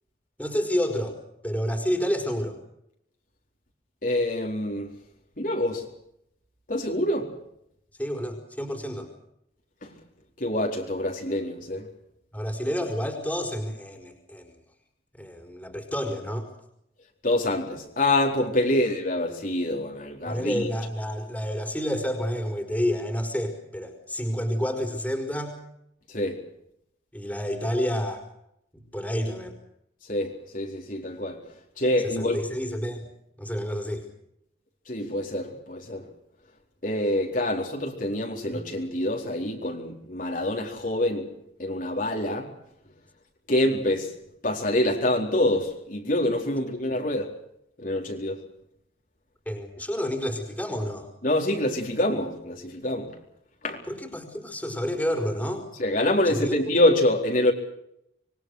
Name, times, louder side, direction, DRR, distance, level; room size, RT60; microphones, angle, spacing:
voice 1, 0.4-1.2 1.4-2.6 8.0-9.1 12.3-14.5 15.1-16.5 20.2-25.6 27.1-28.2 28.9-29.5 32.0-33.1 33.4-34.0 38.5-38.6 49.4-51.1 53.9-55.7 56.2-56.6, equal, 10° left, 4.8 m, -29 dB
voice 2, 4.0-4.9 5.4-5.8 6.7-7.3 9.8-9.9 10.4-11.9 17.2-20.7 26.1-26.4 30.1-31.4 31.8-32.4 34.9-36.0 36.8-41.3 41.6-42.5 43.5-44.1 44.4-47.3 47.8-48.4 51.2-53.1 53.6-53.8 55.8-57.5, left 1 dB, 50° left, 4.3 m, -26 dB
26.5 x 23.0 x 6.5 m
head